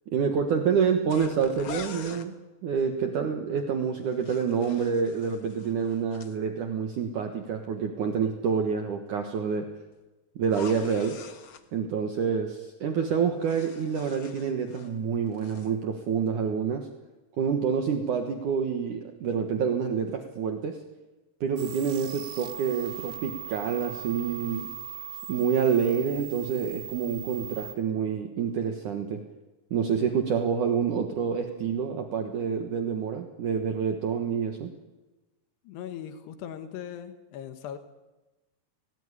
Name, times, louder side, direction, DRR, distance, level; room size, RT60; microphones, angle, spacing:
voice 1, 0.1-2.3 2.6-9.7 10.4-11.2 11.7-16.9 17.4-20.8 21.4-24.7 25.3-29.2 29.7-34.7, right 6 dB, 60° right, 5 dB, 2.7 m, -27 dB
sound 1, 1.1-2.3 3.9-6.4 10.4-11.6 13.1-15.0 15.3-15.7, left 7 dB, 55° left, 1.4 m, -45 dB
sound 2, 21.6-27.7, right 9 dB, 80° right, 1.5 m, -40 dB
voice 2, 35.7-37.8, left 9 dB, 90° left, 8 dB, 3.6 m, -39 dB
30.0 x 18.5 x 10.0 m, 1.1 s
omnidirectional pair, 4.7 m